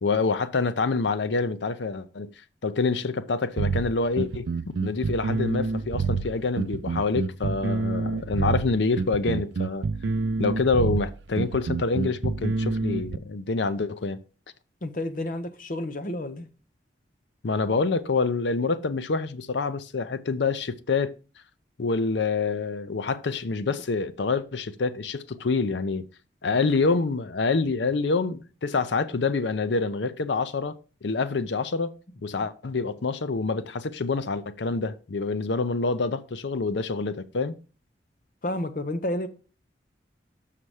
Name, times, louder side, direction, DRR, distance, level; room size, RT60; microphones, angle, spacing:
voice 1, 0.0-2.3 2.6-9.9 10.4-14.2 17.4-21.1 21.8-26.1 26.4-31.9 32.2-37.6, left 4 dB, 80° left, 0.6 m, -26 dB
sound 1, 3.6-13.2, right 4 dB, 80° right, 0.4 m, -27 dB
voice 2, 14.8-16.5 38.4-39.3, left 1 dB, 50° left, 0.8 m, -30 dB
6.6 x 5.7 x 4.8 m
head